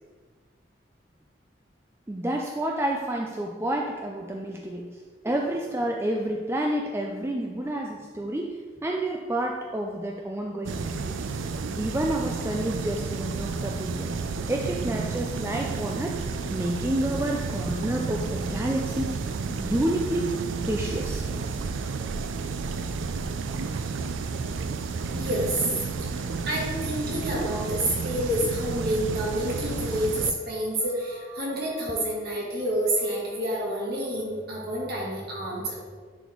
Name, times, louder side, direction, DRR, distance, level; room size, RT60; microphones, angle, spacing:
voice 1, 2.1-4.9 5.2-11.4 11.8-14.1 14.5-16.2 16.5-19.3 19.6-20.3 20.6-21.2, right 1 dB, 15° right, 0 dB, 0.4 m, -29 dB
sound 1, 10.6-30.3, right 4 dB, 90° right, 0.4 m, -31 dB
voice 2, 25.1-25.7 26.1-35.7, right 1 dB, 55° right, -4 dB, 1.9 m, -28 dB
10.5 x 4.1 x 3.1 m, 1.5 s
head